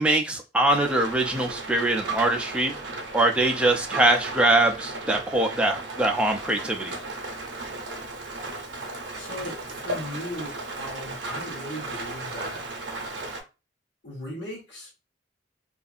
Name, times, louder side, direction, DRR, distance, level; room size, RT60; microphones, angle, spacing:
voice 1, 0.0-2.7 3.1-6.9, right 2 dB, 5° right, 0.4 m, -23 dB
Rain, 0.7-13.4, right 2 dB, 80° right, 0.6 m, -35 dB
voice 2, 9.1-12.6 14.0-14.9, left 1 dB, 80° left, 1.1 m, -37 dB
2.6 x 2.4 x 2.4 m
head